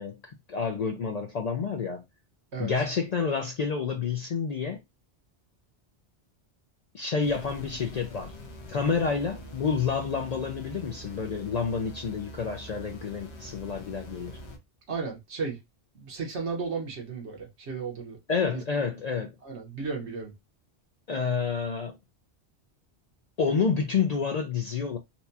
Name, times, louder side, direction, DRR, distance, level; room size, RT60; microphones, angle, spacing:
voice 1, 0.0-2.0 2.6-4.8 6.9-8.3 8.7-14.4 18.3-19.3 21.1-22.0 23.4-25.0, left 5 dB, 60° left, 0.4 m, -29 dB
sound 1, 7.2-14.6, equal, 80° left, 1.2 m, -44 dB
voice 2, 14.9-15.6 16.0-18.2 18.5-18.6 19.4-20.3, right 4 dB, 85° right, 1.5 m, -34 dB
4.2 x 2.2 x 2.7 m
omnidirectional pair, 1.1 m